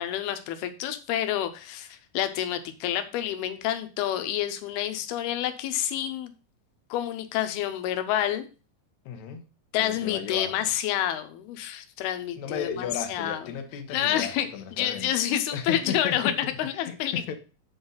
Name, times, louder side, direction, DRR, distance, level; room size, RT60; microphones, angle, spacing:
voice 1, 0.0-6.3 6.9-8.5 9.7-13.4 13.9-14.5 14.8-16.3 16.6-17.1, left 11 dB, 90° left, 8 dB, 2.7 m, -28 dB
voice 2, 9.0-9.4 9.8-10.6 12.4-15.1 15.5-16.3 16.7-17.3, left 7 dB, 70° left, 5 dB, 1.8 m, -34 dB
7.8 x 4.0 x 5.5 m, 0.34 s
omnidirectional pair, 4.5 m